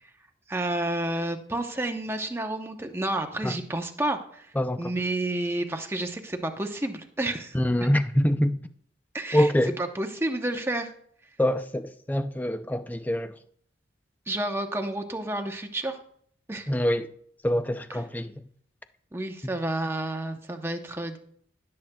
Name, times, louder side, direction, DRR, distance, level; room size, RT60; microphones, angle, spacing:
voice 1, 0.5-4.5 4.8-7.6 9.1-9.5 9.8-10.9 14.3-16.0 16.5-16.7 19.1-21.2, right 1 dB, 15° right, 0.8 m, -30 dB
voice 2, 4.6-4.9 7.5-8.6 9.3-9.7 11.4-13.3 16.7-17.1 17.4-18.3, equal, 10° left, 0.4 m, -25 dB
16.5 x 7.7 x 2.3 m
head